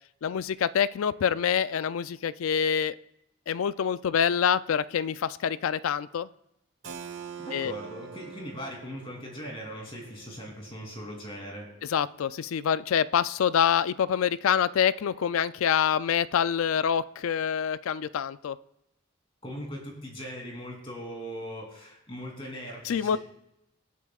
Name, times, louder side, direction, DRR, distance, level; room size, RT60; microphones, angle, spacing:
voice 1, 0.2-3.0 3.5-6.3 7.5-7.7 11.9-18.6 22.9-23.2, left 8 dB, 85° left, 16 dB, 0.4 m, -26 dB
Keyboard (musical), 6.8-12.4, right 6 dB, 65° right, 1.1 m, -46 dB
voice 2, 7.4-11.7 19.4-23.2, equal, 25° left, -1 dB, 2.9 m, -40 dB
23.5 x 8.3 x 2.4 m, 0.88 s
head